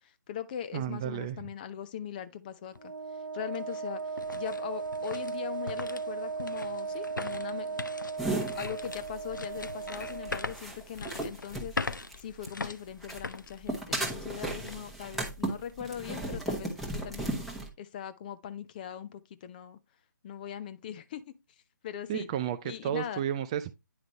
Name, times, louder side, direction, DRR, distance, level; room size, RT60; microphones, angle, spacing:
voice 1, 0.0-2.9 3.3-4.0 4.4-7.8 8.4-11.7 12.2-17.4 17.8-19.8 20.2-21.4 21.8-22.3 22.6-23.2, left 9 dB, 25° left, 0.6 m, -40 dB
voice 2, 0.7-1.4 22.1-23.7, right 10 dB, 20° right, 0.3 m, -32 dB
sound 1, 2.7-2.8 3.3-14.3 14.6-14.8 15.4-15.7, left 3 dB, 75° left, 0.6 m, -41 dB
Wind instrument woodwind instrument, 2.8-10.6, right 5 dB, 85° right, 0.5 m, -37 dB
sound 2, 8.2-12.7 13.0-17.7, right 2 dB, ahead, 1.0 m, -35 dB
9.6 x 5.0 x 3.0 m
figure-of-eight pair, 140°, 10 cm